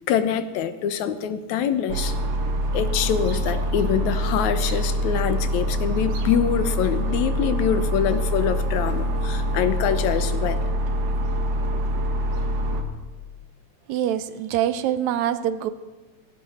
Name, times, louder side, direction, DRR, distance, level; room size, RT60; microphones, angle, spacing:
voice 1, 0.1-2.2 2.7-10.6, left 8 dB, 80° left, 11 dB, 2.3 m, -25 dB
sound 1, 1.9-12.8, equal, 65° right, 2.7 m, -25 dB
voice 2, 13.9-15.7, right 10 dB, 80° right, 13 dB, 2.0 m, -24 dB
18.0 x 17.0 x 4.3 m, 1.2 s
omnidirectional pair, 3.3 m